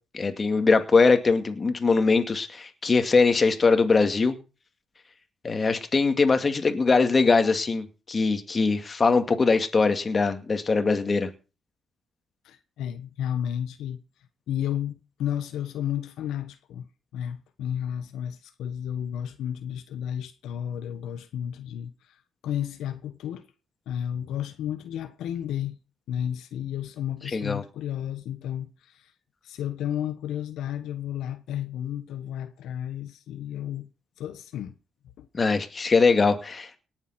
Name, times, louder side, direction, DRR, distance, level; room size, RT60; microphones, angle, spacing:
voice 1, 0.1-4.4 5.4-11.3 27.3-27.6 35.3-36.8, left 4 dB, 35° left, 2.3 m, -22 dB
voice 2, 12.4-14.0 14.5-22.2 22.4-23.5 23.9-25.8 26.1-29.1 29.4-33.9 34.2-34.7 35.2-35.3, left 10 dB, 85° left, 1.2 m, -32 dB
18.5 x 7.4 x 5.9 m
cardioid pair, 90°, 0 cm